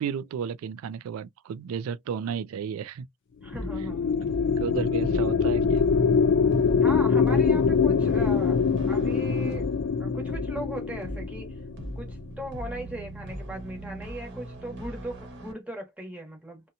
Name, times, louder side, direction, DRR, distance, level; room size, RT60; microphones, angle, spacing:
voice 1, 0.0-3.1 3.8-3.9 4.6-5.8, right 7 dB, 85° right, 0.3 m, -33 dB
sound 1, 3.4-12.0, left 5 dB, 60° left, 0.3 m, -24 dB
voice 2, 3.4-4.2 6.8-8.6 8.9-9.7 10.0-11.5 12.0-16.6, right 1 dB, 5° right, 1.0 m, -38 dB
sound 2, 3.5-15.5, equal, 55° right, 1.0 m, -39 dB
2.8 x 2.1 x 2.5 m
head